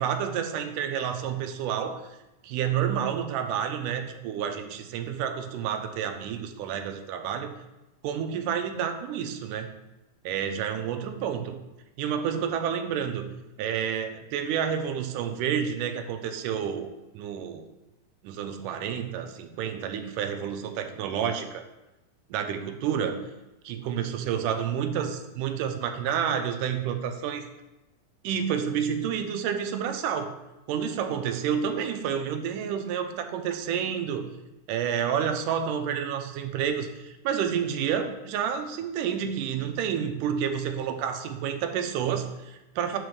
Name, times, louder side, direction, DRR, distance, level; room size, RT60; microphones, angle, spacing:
voice 1, 0.0-2.0 2.4-7.5 8.0-9.7 10.3-11.6 12.0-13.3 13.6-16.9 17.1-17.6 18.2-21.6 22.3-23.2 23.6-25.1 25.4-27.4 28.2-30.3 30.7-34.3 34.7-43.0, right 8 dB, 85° right, 7 dB, 2.2 m, -29 dB
5.1 x 4.8 x 6.3 m, 0.99 s
omnidirectional pair, 3.7 m